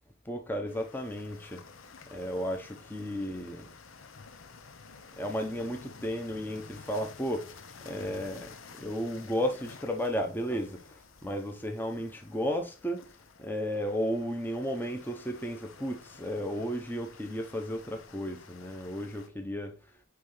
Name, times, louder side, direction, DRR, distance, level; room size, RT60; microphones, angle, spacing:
voice 1, 0.2-1.7 2.1-3.7 5.2-7.6 7.8-13.1 13.4-19.8, equal, 10° left, 0.9 m, -34 dB
sound 1, 0.7-19.3, left 5 dB, 65° left, 0.9 m, -52 dB
9.4 x 3.3 x 3.2 m
head